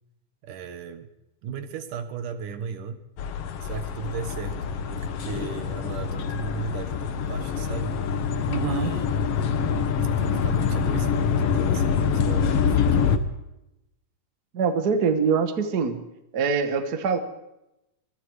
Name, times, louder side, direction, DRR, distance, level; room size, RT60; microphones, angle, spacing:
voice 1, 0.4-1.1 1.4-3.0 3.6-8.0 8.6-9.1 10.2-13.2, right 6 dB, 80° right, 10 dB, 3.0 m, -36 dB
sound 1, 3.2-13.2, left 6 dB, 60° left, 1.9 m, -25 dB
voice 2, 8.5-8.9 14.5-16.0 16.3-17.2, right 5 dB, 40° right, 8 dB, 1.6 m, -24 dB
25.5 x 22.0 x 4.9 m, 0.91 s
omnidirectional pair, 3.6 m